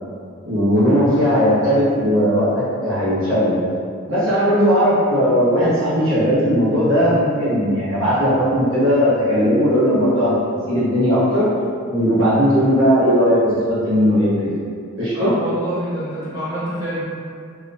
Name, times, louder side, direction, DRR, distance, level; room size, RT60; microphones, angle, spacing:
voice 1, 0.5-3.6 4.1-10.3 10.7-11.5 11.9-13.4 13.7-14.5 15.0-15.3, equal, 70° right, -11 dB, 1.1 m, -17 dB
voice 2, 15.1-17.0, right 1 dB, 15° right, -14 dB, 1.3 m, -27 dB
3.2 x 3.0 x 2.6 m, 2.3 s
head